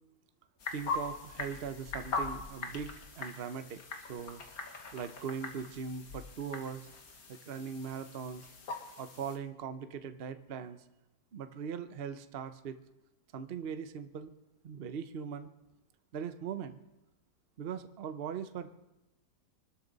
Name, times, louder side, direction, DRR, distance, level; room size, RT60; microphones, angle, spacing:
sound 1, 0.6-9.4, left 4 dB, 60° left, 2.0 m, -41 dB
voice 1, 0.7-3.8 4.1-4.4 4.9-6.9 7.3-8.5 9.0-10.8 11.3-12.8 13.3-14.3 14.6-15.5 16.1-16.8 17.6-18.7, right 7 dB, 45° right, 9 dB, 0.9 m, -40 dB
24.5 x 12.5 x 4.0 m, 0.99 s
omnidirectional pair, 1.8 m